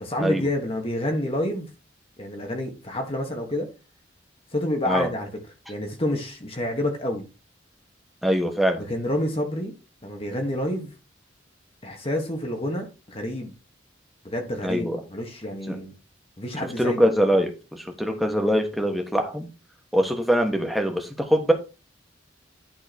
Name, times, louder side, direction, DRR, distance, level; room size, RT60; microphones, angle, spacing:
voice 1, 0.0-1.7 2.2-3.7 4.5-5.3 5.7-7.2 8.8-9.7 10.0-10.9 11.8-13.5 14.2-15.9 16.4-17.1, left 1 dB, 30° left, 1.5 m, -28 dB
voice 2, 8.2-8.8 14.6-15.0 15.7-15.8 16.6-19.5 19.9-21.5, equal, ahead, 1.4 m, -23 dB
11.0 x 3.9 x 4.3 m
head